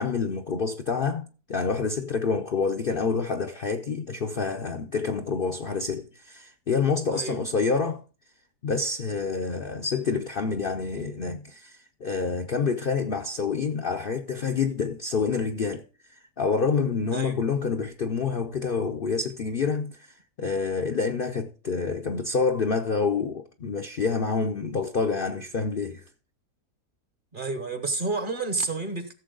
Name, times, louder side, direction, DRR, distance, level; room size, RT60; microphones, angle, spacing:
voice 1, 0.0-8.0 8.6-15.8 16.1-26.0, left 5 dB, 55° left, 0.6 m, -27 dB
voice 2, 17.1-17.4 27.3-29.1, right 3 dB, 40° right, 1.1 m, -30 dB
15.5 x 7.1 x 3.8 m
omnidirectional pair, 1.6 m